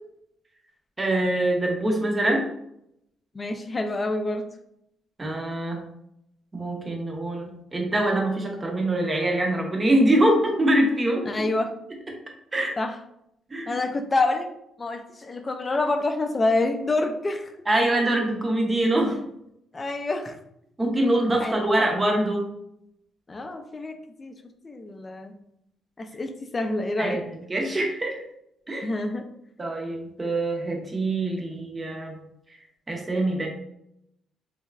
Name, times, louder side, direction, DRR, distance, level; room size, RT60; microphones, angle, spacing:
voice 1, 1.0-2.4 5.2-5.8 6.5-11.5 12.5-12.8 13.5-13.8 17.7-19.2 20.8-22.5 27.0-28.2 28.7-28.9 29.6-32.2 32.9-33.5, right 1 dB, 25° right, 1 dB, 0.8 m, -24 dB
voice 2, 3.3-4.4 11.3-11.7 12.8-13.0 13.7-14.5 14.8-17.5 19.7-20.4 21.4-21.6 23.3-24.3 24.6-25.4 26.0-27.2 28.8-29.3, left 2 dB, 25° left, 6 dB, 0.4 m, -27 dB
3.2 x 2.9 x 2.4 m, 0.77 s
cardioid pair, 90°, 0 cm